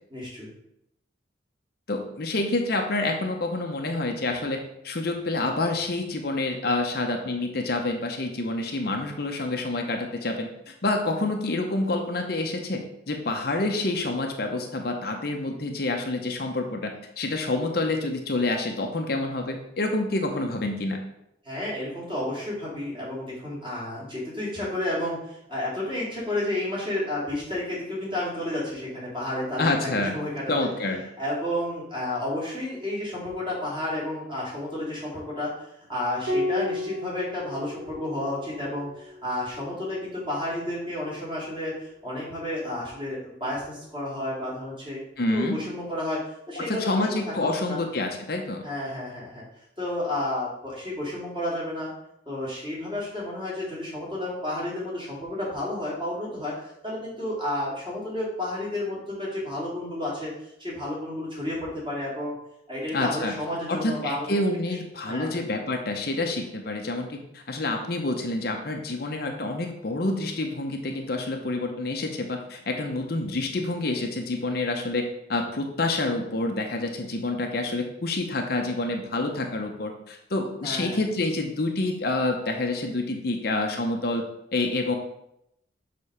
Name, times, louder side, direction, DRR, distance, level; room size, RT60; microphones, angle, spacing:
voice 1, 0.1-0.5 21.4-30.7 31.2-45.0 45.3-46.2 46.5-47.8 48.6-49.4 49.8-51.9 52.3-62.3 62.7-64.4 65.0-65.3 80.6-81.0, left 1 dB, 25° right, -7 dB, 2.8 m, -31 dB
voice 2, 1.9-21.0 29.6-30.1 30.5-31.0 45.2-45.6 46.6-48.6 62.9-63.4 63.7-84.2 84.5-84.9, left 2 dB, 50° left, 3 dB, 0.7 m, -28 dB
Piano, 36.3-41.1 42.8-43.6, left 2 dB, 90° right, 1.2 m, -34 dB
6.6 x 3.8 x 5.6 m, 0.80 s
head